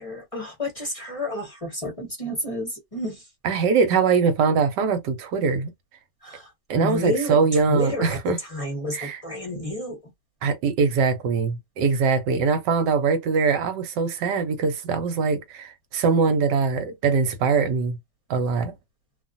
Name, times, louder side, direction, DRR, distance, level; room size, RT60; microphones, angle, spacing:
voice 1, 0.0-3.2 6.2-7.4 7.7-8.2 8.5-10.0, equal, 25° left, 0.8 m, -30 dB
voice 2, 3.4-5.7 6.7-8.4 8.9-9.2 10.4-18.0 18.3-18.7, right 5 dB, 80° right, 1.3 m, -22 dB
2.8 x 2.4 x 2.5 m
omnidirectional pair, 1.9 m